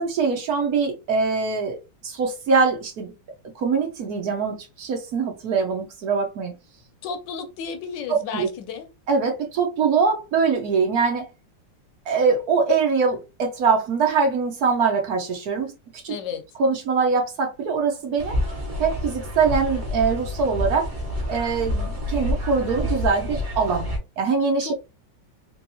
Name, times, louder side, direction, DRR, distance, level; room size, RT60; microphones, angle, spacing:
voice 1, 0.0-1.8 2.0-3.1 3.5-6.5 8.1-8.5 9.1-11.3 12.1-15.7 16.0-16.1 16.6-18.4 18.8-20.9 21.3-23.9 24.2-24.7, right 5 dB, 60° right, 1.2 m, -23 dB
voice 2, 7.0-8.9 16.1-16.5 24.6-24.7, left 7 dB, 75° left, 1.3 m, -33 dB
sound 1, 18.2-24.0, left 1 dB, 40° right, 1.3 m, -28 dB
3.4 x 3.2 x 2.7 m
omnidirectional pair, 2.0 m